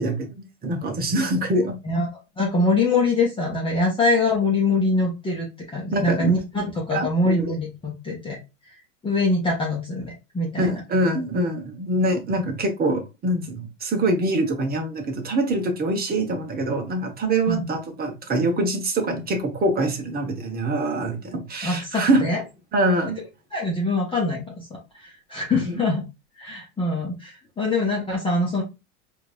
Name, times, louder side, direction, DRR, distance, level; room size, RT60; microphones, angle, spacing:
voice 1, 0.0-1.8 5.9-6.3 6.9-7.5 10.6-22.3 22.7-23.2 25.5-25.8, right 1 dB, 25° right, 1.1 m, -24 dB
voice 2, 2.4-8.4 9.0-10.7 17.5-17.7 21.6-22.4 23.5-26.0 26.4-28.6, left 2 dB, 15° left, 1.1 m, -24 dB
4.4 x 2.8 x 2.4 m
hypercardioid pair, 110°, 39 cm